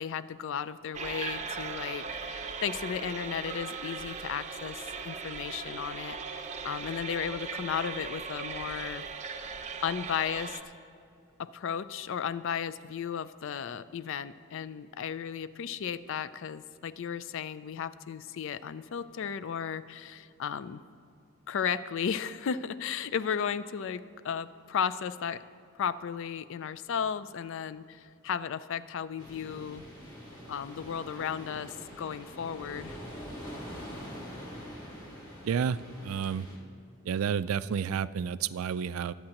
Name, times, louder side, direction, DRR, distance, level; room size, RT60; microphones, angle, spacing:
voice 1, 0.0-9.0 9.8-10.6 11.4-20.8 21.5-25.4 25.8-29.8 30.5-33.0, left 7 dB, 60° left, 15 dB, 0.4 m, -35 dB
sound 1, 0.9-10.6, right 5 dB, 35° right, 0.6 m, -38 dB
sound 2, 29.2-36.6, equal, 20° left, 2.0 m, -44 dB
voice 2, 35.4-35.8 36.0-36.5 37.1-39.1, right 7 dB, 75° right, 15 dB, 0.3 m, -30 dB
22.0 x 8.6 x 2.9 m, 2.5 s
head